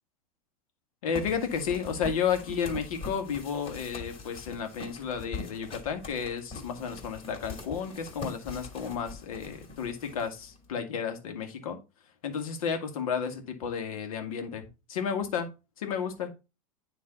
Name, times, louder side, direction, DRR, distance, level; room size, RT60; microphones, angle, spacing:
voice 1, 1.0-11.8 12.2-15.5 15.8-16.3, left 7 dB, 75° left, 6 dB, 1.8 m, -32 dB
sound 1, 1.1-10.7, left 3 dB, 30° left, 2.7 m, -43 dB
9.7 x 3.3 x 4.2 m, 0.28 s
hypercardioid pair, 105°, 18 cm